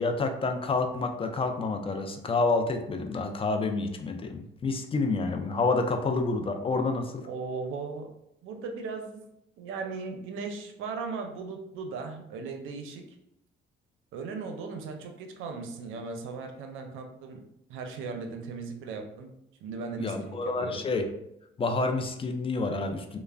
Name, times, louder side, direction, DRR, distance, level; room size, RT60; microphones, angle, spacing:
voice 1, 0.0-7.2 20.0-21.0 21.6-23.2, left 3 dB, 30° left, 5 dB, 0.3 m, -28 dB
voice 2, 7.2-8.1 8.4-9.2 9.6-13.0 14.1-17.4 17.7-19.3 19.6-20.8, right 4 dB, 85° right, 5 dB, 0.5 m, -37 dB
3.1 x 2.0 x 2.4 m, 0.80 s
cardioid pair, 90°, 20 cm